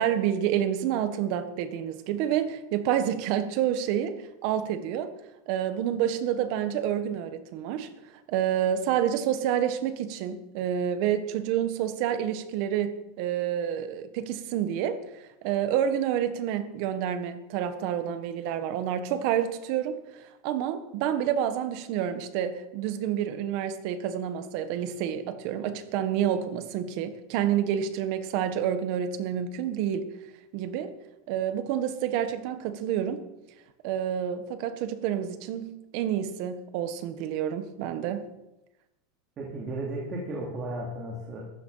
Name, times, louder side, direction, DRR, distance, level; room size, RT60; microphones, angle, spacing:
voice 1, 0.0-5.1 5.5-7.9 8.3-15.0 15.4-30.1 30.5-30.9 31.3-33.2 33.8-38.3, right 10 dB, 50° right, 10 dB, 1.6 m, -28 dB
voice 2, 39.4-41.5, right 1 dB, 25° right, -2 dB, 3.0 m, -34 dB
15.0 x 13.0 x 5.8 m, 0.95 s
supercardioid pair, 170°, 0 cm